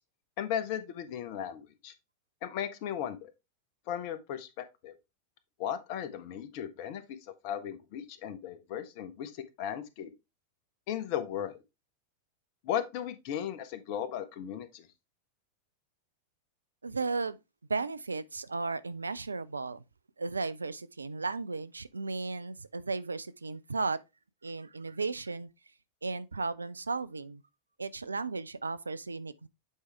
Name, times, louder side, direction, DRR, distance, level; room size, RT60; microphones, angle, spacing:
voice 1, 0.4-1.9 2.4-3.3 3.9-4.9 5.6-7.2 7.4-10.1 10.9-11.6 12.6-14.9, left 9 dB, 45° left, 0.9 m, -36 dB
voice 2, 16.8-17.4 17.7-19.8 20.2-24.0 24.4-25.5 26.0-27.4 27.8-29.5, right 4 dB, 75° right, 0.4 m, -35 dB
8.2 x 4.7 x 3.3 m
figure-of-eight pair, 90°, 0 cm